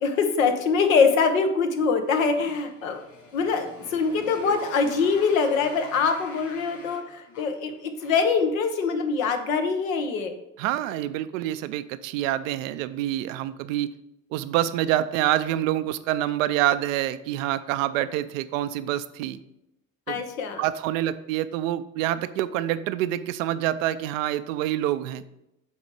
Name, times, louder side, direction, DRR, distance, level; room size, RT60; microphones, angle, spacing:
voice 1, 0.0-3.1 3.3-10.3 20.1-20.6, left 5 dB, 80° left, 6 dB, 0.9 m, -24 dB
Motorcycle, 2.1-8.4, left 2 dB, 45° left, 2.7 m, -45 dB
voice 2, 10.6-13.9 14.3-19.4 20.1-20.2 20.6-25.2, right 13 dB, 75° right, 14 dB, 0.5 m, -26 dB
7.2 x 4.2 x 4.8 m, 0.88 s
hypercardioid pair, 55°, 40 cm